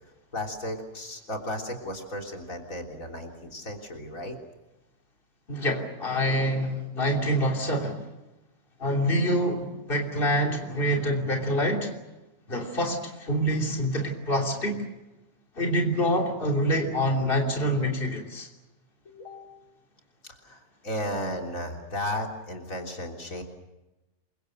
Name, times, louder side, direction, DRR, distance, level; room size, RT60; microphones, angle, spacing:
voice 1, 0.3-4.3 19.1-19.6 20.2-23.4, left 1 dB, 70° left, 2 dB, 3.9 m, -35 dB
voice 2, 5.5-8.0 8.8-11.9 12.5-14.8 15.5-18.5, equal, 40° left, 1 dB, 3.4 m, -26 dB
28.5 x 24.5 x 6.6 m, 1.0 s
omnidirectional pair, 1.5 m